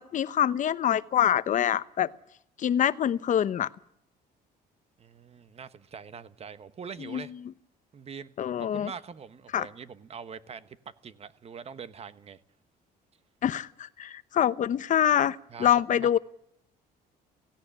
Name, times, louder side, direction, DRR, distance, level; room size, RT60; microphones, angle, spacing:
voice 1, 0.0-2.1 2.6-3.7 7.0-7.2 8.4-8.9 9.5-9.7 13.4-16.2, left 10 dB, 50° left, 0.9 m, -25 dB
voice 2, 5.0-7.3 7.9-8.3 8.6-12.4 15.5-16.2, right 6 dB, 35° right, 1.2 m, -43 dB
17.0 x 16.5 x 9.9 m
cardioid pair, 110°, 17 cm